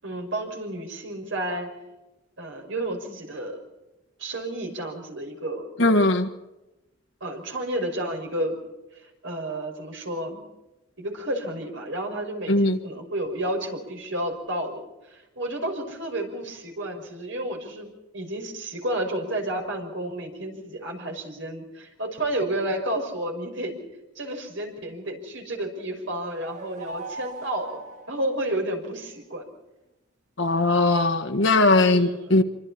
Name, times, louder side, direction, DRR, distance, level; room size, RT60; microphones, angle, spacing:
voice 1, 0.0-1.7 2.4-3.6 4.2-5.6 7.2-8.5 8.9-10.4 11.0-14.8 15.1-23.8 24.2-27.8 28.1-29.4 31.8-32.4, right 1 dB, 75° right, 5.9 m, -31 dB
voice 2, 5.8-6.3 12.5-12.8 30.4-32.4, left 2 dB, 70° left, 1.6 m, -19 dB
flute trill a, 26.0-28.9, right 3 dB, 40° right, 1.7 m, -40 dB
27.0 x 25.0 x 4.4 m
head